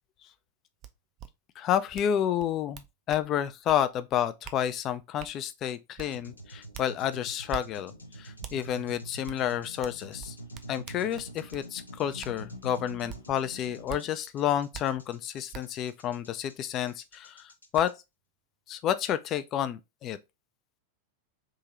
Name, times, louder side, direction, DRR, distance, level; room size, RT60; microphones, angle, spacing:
sound 1, 0.8-0.9 1.2-1.3 1.9-2.1 2.4-3.3 3.7-3.8 4.4-4.6 5.2-5.3 6.0-6.1 6.7-6.9 7.5-7.6 8.4-8.6 9.3-9.4 9.8-11.7 12.2-12.3 13.1-13.2 13.9-14.0 14.7-14.8 15.5-15.6 17.1-17.2 17.7-17.9, right 9 dB, 35° right, 0.4 m, -43 dB
voice 1, 1.6-7.9 8.2-10.3 10.7-17.9 18.7-20.2, left 10 dB, 35° left, 0.4 m, -30 dB
sound 2, 6.0-17.9, right 1 dB, 80° left, 0.7 m, -46 dB
3.6 x 2.7 x 3.0 m
figure-of-eight pair, 90°, 0 cm